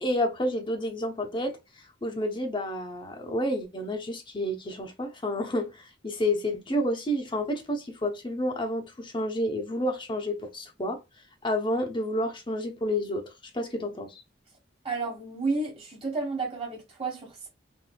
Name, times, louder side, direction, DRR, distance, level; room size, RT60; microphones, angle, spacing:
voice 1, 0.0-1.6 2.0-11.0 11.4-14.2, left 1 dB, 25° left, 0.8 m, -30 dB
voice 2, 14.8-17.5, right 3 dB, 30° right, 1.3 m, -31 dB
4.1 x 2.7 x 2.2 m
head